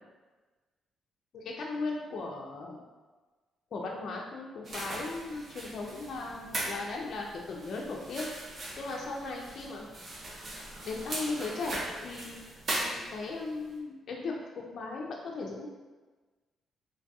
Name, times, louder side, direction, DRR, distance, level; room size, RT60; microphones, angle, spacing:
voice 1, 1.3-2.8 3.7-8.3 8.8-9.9 10.9-12.4 12.8-15.7, left 3 dB, 60° left, -1 dB, 0.3 m, -37 dB
sound 1, 4.6-13.4, right 1 dB, 50° right, 0.6 m, -39 dB
3.2 x 2.6 x 2.3 m, 1.3 s
cardioid pair, 80°, 0 cm